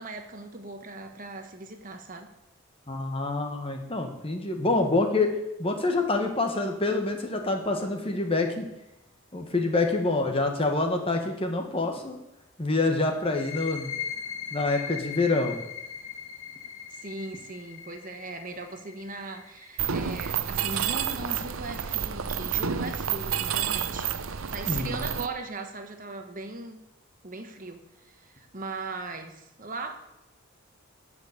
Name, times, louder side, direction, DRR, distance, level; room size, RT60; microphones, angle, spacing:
voice 1, 0.0-2.3 16.9-26.8 27.2-30.0, right 3 dB, 35° right, 5 dB, 1.1 m, -39 dB
voice 2, 2.9-5.3 5.6-8.7 9.3-12.2 12.6-13.9 14.5-15.6 24.6-24.9, left 2 dB, 25° left, 3 dB, 1.4 m, -26 dB
sound 1, 13.2-20.6, left 8 dB, 65° left, 2.0 m, -39 dB
Mechanisms, 19.8-25.3, right 8 dB, 70° right, 0.7 m, -29 dB
13.0 x 5.3 x 8.5 m, 0.92 s
head